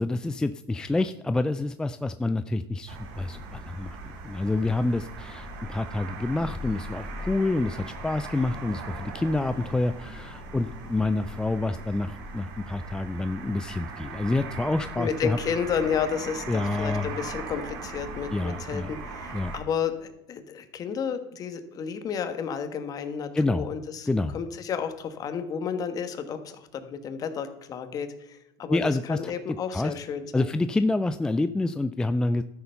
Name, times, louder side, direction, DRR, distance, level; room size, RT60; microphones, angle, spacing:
voice 1, 0.0-4.0 4.2-15.4 16.5-17.1 18.3-18.9 19.3-19.5 23.3-23.7 24.1-24.3 28.7-29.3 29.7-29.9 30.3-32.4, left 2 dB, 5° left, 11 dB, 0.3 m, -27 dB
Windy Day Street Bird, 2.9-19.6, right 2 dB, 85° right, 2.5 m, -39 dB
voice 2, 15.0-24.1 24.3-30.5, left 7 dB, 35° left, 9 dB, 1.3 m, -32 dB
12.5 x 7.0 x 5.6 m, 0.89 s
cardioid pair, 135°, 10 cm